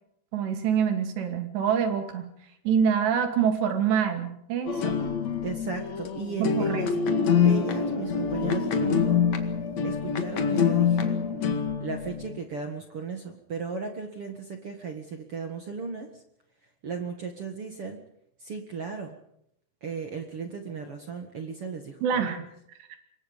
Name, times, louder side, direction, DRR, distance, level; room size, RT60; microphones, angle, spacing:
voice 1, 0.3-2.3 2.6-5.0 6.4-7.0 22.0-22.4 22.8-22.9, right 7 dB, 80° right, 6 dB, 4.7 m, -26 dB
sound 1, 4.7-12.4, left 6 dB, 50° left, 2.7 m, -25 dB
voice 2, 5.4-6.9 7.4-9.2 9.8-11.1 11.8-16.2 16.8-18.0 18.4-19.2 19.8-22.4, right 5 dB, 45° right, 4 dB, 2.0 m, -36 dB
26.5 x 22.5 x 5.3 m, 0.74 s
omnidirectional pair, 4.9 m